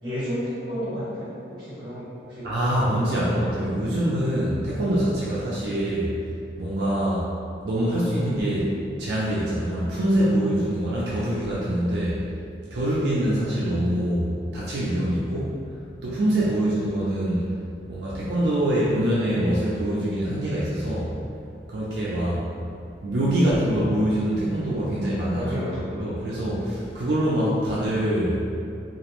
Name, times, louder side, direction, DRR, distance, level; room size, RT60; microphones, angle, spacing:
voice 1, 0.0-2.5 3.0-3.3 5.3-5.4 25.3-26.0, equal, 25° right, -10 dB, 0.9 m, -32 dB
voice 2, 2.4-6.2 6.6-7.3 7.6-12.2 12.7-15.6 16.0-17.5 17.9-21.1 21.7-22.4 23.0-28.4, right 1 dB, 65° right, -7 dB, 0.4 m, -24 dB
2.4 x 2.0 x 2.9 m, 2.5 s
head